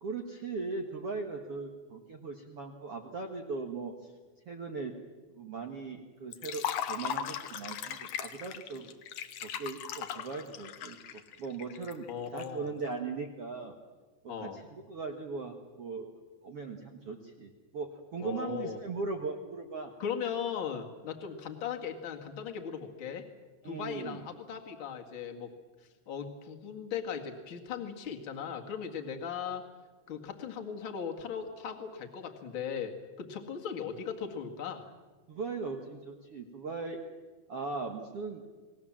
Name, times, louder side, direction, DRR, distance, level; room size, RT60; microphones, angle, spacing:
voice 1, 0.0-3.9 4.4-4.9 5.3-8.9 9.4-12.1 12.3-13.7 14.4-16.1 16.4-19.9 23.6-24.2 35.3-37.0 37.5-38.4, right 4 dB, 60° right, 3 dB, 1.5 m, -39 dB
Liquid, 6.3-12.4, left 9 dB, 75° left, 1.7 m, -38 dB
voice 2, 12.1-12.7 14.3-14.6 18.2-18.8 20.0-23.3 23.6-25.5 26.1-29.6 30.1-34.9, left 7 dB, 40° left, 3 dB, 1.9 m, -38 dB
29.0 x 20.0 x 7.4 m, 1.3 s
omnidirectional pair, 4.9 m